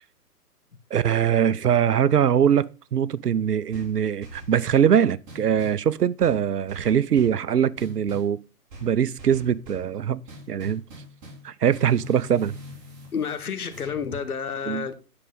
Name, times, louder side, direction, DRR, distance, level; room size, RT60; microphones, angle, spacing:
voice 1, 0.9-8.4 8.8-10.2 10.5-10.8 11.4-12.6 14.7-14.8, right 8 dB, 75° right, 0.6 m, -22 dB
sound 1, 3.7-4.9 5.3-5.8 6.2-7.4 7.8-8.3 8.7-9.9 10.3-11.5 11.7-14.2, equal, 25° right, 3.2 m, -43 dB
voice 2, 13.1-14.9, left 6 dB, 65° left, 1.4 m, -30 dB
9.8 x 6.2 x 3.9 m
figure-of-eight pair, 130°, 47 cm